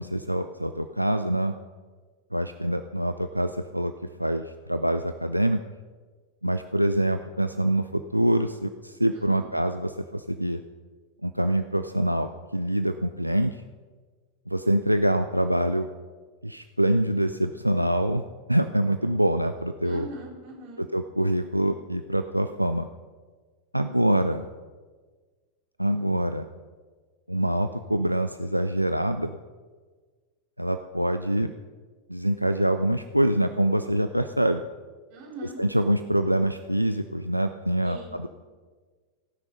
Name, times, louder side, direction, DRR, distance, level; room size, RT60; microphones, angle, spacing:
voice 1, 0.0-1.5 2.3-3.9 4.2-5.6 6.4-10.6 11.2-13.6 14.5-15.9 16.4-18.2 18.5-20.1 20.8-22.9 23.7-24.5 25.8-26.5 27.3-29.4 30.6-31.5 32.1-34.6 35.6-38.3, right 1 dB, 90° right, 8 dB, 0.3 m, -25 dB
voice 2, 9.1-9.6 19.8-20.8 35.1-35.6 37.8-38.3, right 2 dB, 45° right, -2 dB, 3.8 m, -42 dB
17.5 x 6.0 x 5.2 m, 1.5 s
figure-of-eight pair, 90°, 0 cm